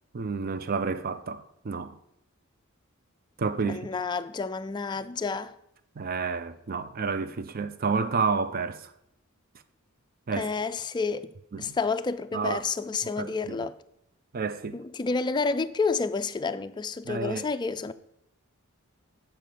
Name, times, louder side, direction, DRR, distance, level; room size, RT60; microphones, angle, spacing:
voice 1, 0.1-2.0 3.4-3.9 6.0-8.9 10.3-10.5 11.5-11.7 12.3-12.7 13.2-13.7 14.3-14.8 17.1-17.4, right 5 dB, 45° right, 0.5 m, -30 dB
voice 2, 3.6-5.5 10.3-11.3 11.6-13.8 14.7-17.9, left 4 dB, 20° left, 0.3 m, -30 dB
7.7 x 4.5 x 6.7 m
head